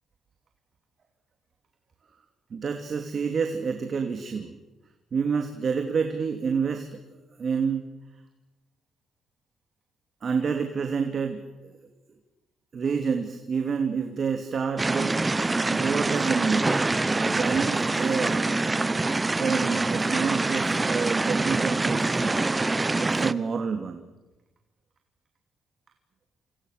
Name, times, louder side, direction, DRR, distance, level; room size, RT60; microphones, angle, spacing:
voice 1, 2.5-4.6 5.1-7.0 7.4-7.8 10.2-11.7 12.7-16.8 17.3-18.6 19.4-22.4 23.0-24.0, right 5 dB, 50° right, 5 dB, 2.7 m, -28 dB
sound 1, 14.8-23.3, right 3 dB, 20° right, 0.8 m, -25 dB
27.5 x 27.0 x 6.7 m, 1.1 s
cardioid pair, 90°, 0 cm